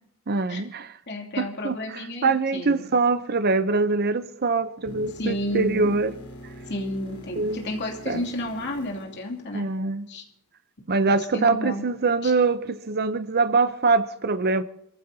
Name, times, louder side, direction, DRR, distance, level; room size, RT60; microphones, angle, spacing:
voice 1, 0.3-0.9 1.4-1.8 2.2-6.1 7.4-7.6 8.1-8.2 9.5-10.1 10.9-14.6, right 3 dB, 45° right, 0.7 m, -23 dB
voice 2, 1.1-2.8 5.1-6.0 6.7-9.7 10.1-10.2 11.2-11.8 12.2-12.3, left 1 dB, 50° left, 2.8 m, -31 dB
sound 1, 4.8-9.9 13.9-14.0, equal, 70° left, 3.9 m, -43 dB
27.5 x 14.5 x 2.8 m
head